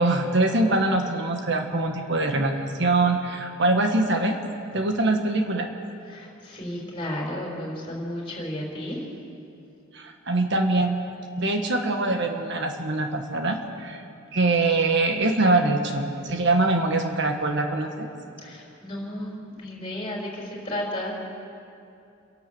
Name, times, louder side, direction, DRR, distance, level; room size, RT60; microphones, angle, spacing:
voice 1, 0.0-4.3 4.7-5.7 9.9-11.0 11.3-14.0 14.3-18.1, right 2 dB, 60° right, 4 dB, 1.5 m, -23 dB
voice 2, 6.1-9.0 18.4-21.2, left 1 dB, 25° left, -2 dB, 5.3 m, -33 dB
28.5 x 11.5 x 7.9 m, 2.6 s
head